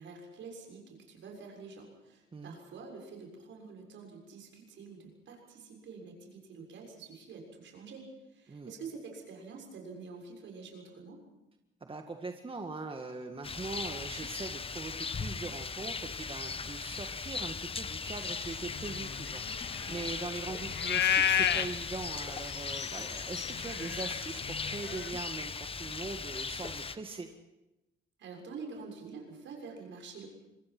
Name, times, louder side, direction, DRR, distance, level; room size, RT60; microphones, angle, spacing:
voice 1, 0.0-11.2 28.2-30.3, right 4 dB, 70° right, 2 dB, 6.7 m, -47 dB
voice 2, 11.8-19.4 19.9-27.3, right 3 dB, 25° right, 5 dB, 1.8 m, -41 dB
Rain, 13.4-27.0, left 4 dB, 30° left, 1.0 m, -38 dB
sound 1, 18.3-25.1, left 9 dB, 60° left, 1.3 m, -33 dB
25.5 x 21.0 x 6.1 m, 0.97 s
cardioid pair, 90°, 20 cm